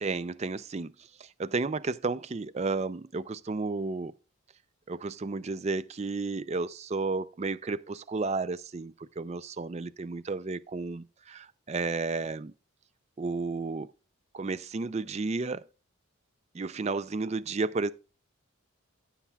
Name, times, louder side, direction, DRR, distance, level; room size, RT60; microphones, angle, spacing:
voice 1, 0.0-0.9 1.2-4.1 4.9-12.5 13.2-13.9 14.3-15.6 16.5-17.9, right 3 dB, 30° right, 0.4 m, -32 dB
15.5 x 7.2 x 2.3 m
head